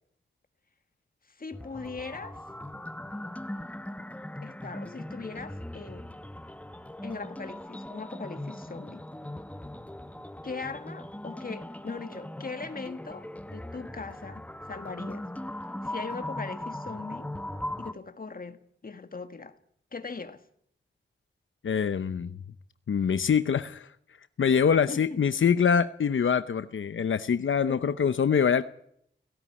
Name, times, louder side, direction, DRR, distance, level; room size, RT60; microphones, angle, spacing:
voice 1, 1.3-2.4 4.4-6.1 7.0-9.0 10.4-15.3 15.8-17.3 17.8-19.6 19.9-20.4 24.7-25.2 27.7-27.8, left 4 dB, 45° left, 1.8 m, -40 dB
sound 1, 1.5-17.9, left 1 dB, 5° left, 0.9 m, -39 dB
voice 2, 21.6-22.3 22.9-23.9 24.4-28.6, left 7 dB, 90° left, 0.8 m, -24 dB
17.5 x 16.5 x 9.9 m
wide cardioid pair, 100°, 20 cm